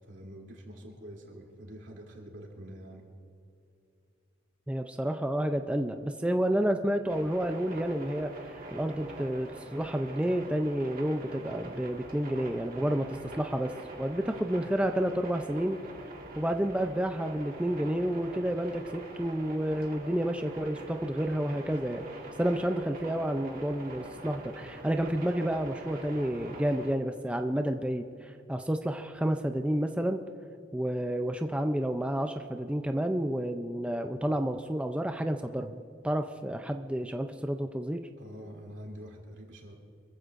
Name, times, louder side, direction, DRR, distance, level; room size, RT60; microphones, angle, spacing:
voice 1, 0.1-3.0 38.2-39.8, equal, 75° right, -2 dB, 2.9 m, -46 dB
voice 2, 4.7-13.7 14.0-15.8 16.4-22.0 22.4-30.2 30.7-38.0, right 1 dB, 5° right, 5 dB, 0.5 m, -30 dB
sound 1, 7.1-26.9, right 2 dB, 50° right, 1.9 m, -45 dB
26.0 x 14.5 x 2.6 m, 2.6 s
head